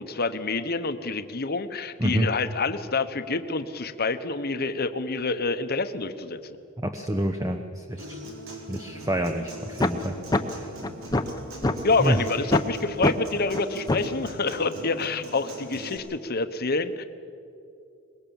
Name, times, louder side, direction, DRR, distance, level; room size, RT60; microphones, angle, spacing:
voice 1, 0.0-6.4 11.8-17.0, left 3 dB, 50° left, 10 dB, 1.1 m, -27 dB
voice 2, 6.8-8.2 8.7-10.1 10.5-10.7 12.0-12.2, right 1 dB, 15° right, 6 dB, 0.9 m, -27 dB
Human voice / Acoustic guitar, 8.0-16.0, right 1 dB, 85° right, 4.7 m, -40 dB
sound 1, 9.8-9.9 10.3-10.4 10.8-11.8 12.1-12.2 12.5-12.7 13.0-13.1 13.5-13.6 13.9-14.1, left 2 dB, 20° left, 0.9 m, -22 dB
24.0 x 21.0 x 7.2 m, 2.6 s
head